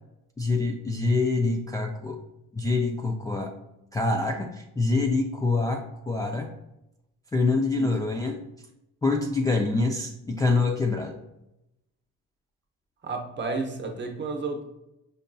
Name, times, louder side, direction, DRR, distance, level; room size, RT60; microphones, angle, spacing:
voice 1, 0.4-2.2 2.5-3.5 3.9-6.5 7.3-8.4 9.0-11.2, left 3 dB, 10° left, -1 dB, 0.3 m, -25 dB
voice 2, 13.0-14.6, right 3 dB, 35° right, 3 dB, 0.8 m, -31 dB
5.3 x 2.6 x 2.2 m, 0.88 s
cardioid pair, 90°, 30 cm